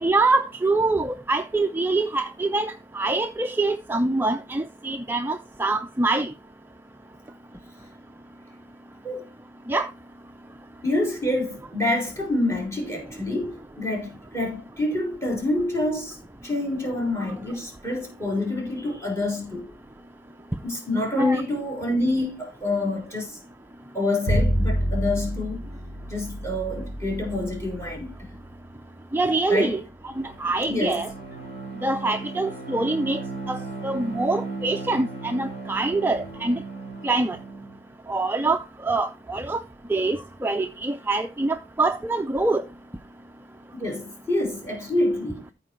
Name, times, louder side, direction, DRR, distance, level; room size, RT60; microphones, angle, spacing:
voice 1, 0.0-6.3 9.7-9.9 21.2-21.4 29.1-29.8 30.2-31.1 31.8-33.2 33.5-33.6 33.8-36.6 37.0-37.4 38.1-39.6 39.9-42.6, right 2 dB, 10° right, 0.4 m, -24 dB
voice 2, 10.8-16.2 16.4-19.8 20.6-23.4 23.9-25.6 26.1-28.1 29.5-29.7 30.7-31.0 43.8-45.4, left 2 dB, 15° left, 3.6 m, -27 dB
Bowed string instrument, 24.3-30.4, equal, 90° left, 2.8 m, -29 dB
Bowed string instrument 2, 30.1-37.8, right 3 dB, 35° left, 3.5 m, -36 dB
14.0 x 4.6 x 4.4 m
head